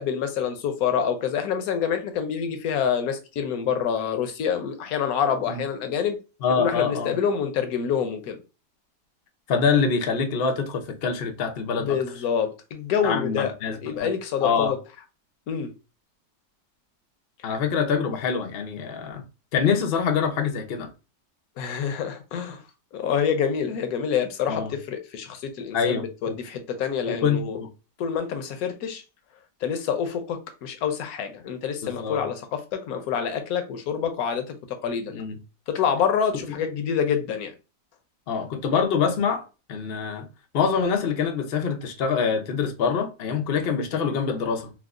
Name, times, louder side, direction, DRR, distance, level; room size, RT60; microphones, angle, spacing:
voice 1, 0.0-6.2 6.6-8.4 11.8-13.5 13.8-14.8 15.5-15.7 21.6-22.6 22.9-27.6 28.0-29.0 29.6-35.1 35.7-37.5, left 7 dB, 70° left, 0.9 m, -27 dB
voice 2, 6.4-7.2 9.5-12.0 13.0-14.1 14.4-14.7 17.4-19.2 19.5-20.9 24.5-24.7 25.7-26.4 27.1-27.7 31.8-32.2 35.1-35.4 38.3-40.3 40.5-44.7, left 6 dB, 85° left, 0.5 m, -25 dB
4.5 x 2.0 x 2.4 m
omnidirectional pair, 1.8 m